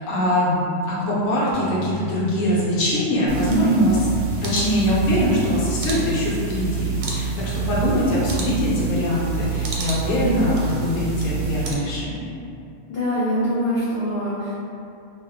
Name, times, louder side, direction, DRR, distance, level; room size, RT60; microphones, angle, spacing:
voice 1, 0.1-4.1 4.4-12.3, left 1 dB, 85° left, -7 dB, 1.1 m, -22 dB
sound 1, 1.5-8.4, left 4 dB, 60° right, 0.8 m, -36 dB
sound 2, 3.3-11.7, right 6 dB, 85° right, 1.0 m, -27 dB
voice 2, 12.9-14.6, equal, 60° left, -10 dB, 0.7 m, -24 dB
2.6 x 2.2 x 3.5 m, 2.6 s
omnidirectional pair, 1.3 m